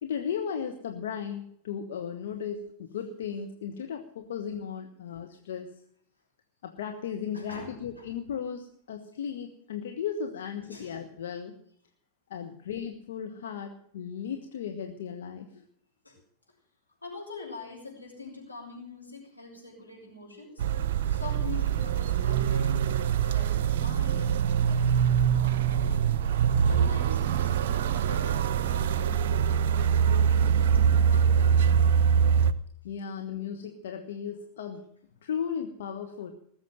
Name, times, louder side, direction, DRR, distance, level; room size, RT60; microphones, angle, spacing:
voice 1, 0.0-5.7 6.6-11.5 12.3-15.5 32.8-34.9 35.2-36.3, left 7 dB, 60° left, 4 dB, 1.4 m, -36 dB
voice 2, 7.3-8.1 10.6-11.0 16.0-16.2 17.0-20.6 21.1-22.8 23.2-26.2 26.7-29.4 30.0-31.9, left 3 dB, 85° left, -1 dB, 6.1 m, -44 dB
sound 1, 20.6-32.5, right 8 dB, 55° right, 0.7 m, -24 dB
19.5 x 7.3 x 9.1 m, 0.64 s
figure-of-eight pair, 90°, 0 cm